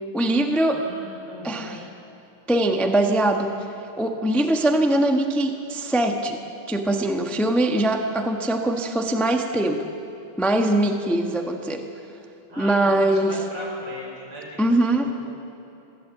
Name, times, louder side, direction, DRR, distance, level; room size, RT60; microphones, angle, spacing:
voice 1, 0.1-0.8 1.4-1.8 2.5-3.6 4.0-6.4 6.7-9.8 10.4-11.8 12.6-13.4 14.6-15.1, right 1 dB, ahead, 4 dB, 0.7 m, -22 dB
voice 2, 0.7-1.9 12.5-15.3, equal, 75° right, -2 dB, 5.9 m, -39 dB
23.0 x 15.5 x 8.2 m, 3.0 s
omnidirectional pair, 2.4 m